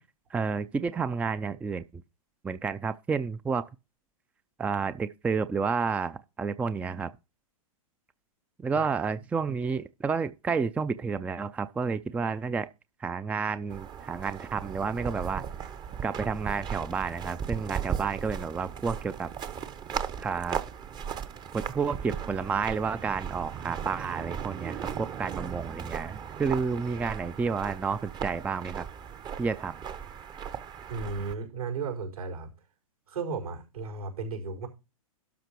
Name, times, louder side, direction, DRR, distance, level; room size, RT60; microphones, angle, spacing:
voice 1, 0.3-2.0 2.4-3.7 4.6-7.1 8.6-12.7 13.0-15.4 16.0-19.3 20.2-20.6 21.5-28.9 29.4-29.8, right 5 dB, 5° right, 0.4 m, -30 dB
sound 1, 13.7-31.3, right 8 dB, 25° right, 0.8 m, -37 dB
voice 2, 30.9-32.5 33.1-34.7, right 4 dB, 80° right, 5.2 m, -34 dB
12.0 x 5.8 x 4.6 m
figure-of-eight pair, 110°, 19 cm